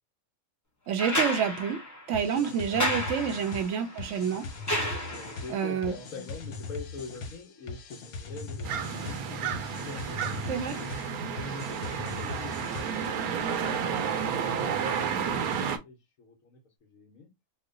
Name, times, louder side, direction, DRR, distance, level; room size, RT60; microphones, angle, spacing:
voice 1, 0.9-1.8 2.1-4.5 4.7-5.0 5.5-5.9 10.5-10.8, right 7 dB, 65° right, 0.8 m, -29 dB
sound 1, 1.0-5.6 7.2-7.3, left 1 dB, 15° left, 0.6 m, -32 dB
sound 2, 2.1-13.2, left 3 dB, 85° left, 1.2 m, -41 dB
voice 2, 5.1-11.0 11.4-13.3 13.8-17.3, left 4 dB, 70° left, 1.1 m, -45 dB
sound 3, 8.6-15.8, right 7 dB, 80° right, 1.1 m, -31 dB
3.1 x 2.1 x 3.7 m
omnidirectional pair, 1.5 m